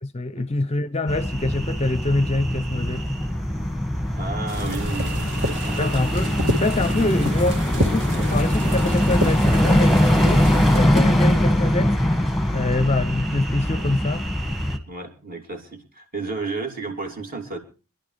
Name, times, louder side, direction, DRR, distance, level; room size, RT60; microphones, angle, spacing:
voice 1, 0.0-3.1 5.8-6.3 6.6-10.5 10.7-12.0 12.5-14.3, left 2 dB, 30° left, 0.6 m, -25 dB
sound 1, 1.1-14.8, left 1 dB, ahead, 1.8 m, -22 dB
voice 2, 4.1-5.9 14.9-17.6, right 3 dB, 40° right, 3.3 m, -33 dB
sound 2, 4.5-10.8, equal, 55° right, 2.5 m, -29 dB
25.5 x 11.5 x 3.4 m
head